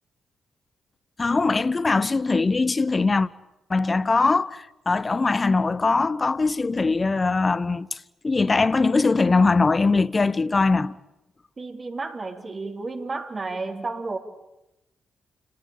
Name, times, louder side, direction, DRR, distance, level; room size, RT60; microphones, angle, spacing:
voice 1, 1.2-3.3 3.7-8.0 8.2-11.0, left 3 dB, 35° left, 0.9 m, -21 dB
voice 2, 11.6-14.2, right 3 dB, 40° right, 3.7 m, -32 dB
29.5 x 18.5 x 9.2 m
hypercardioid pair, 40°, 0 cm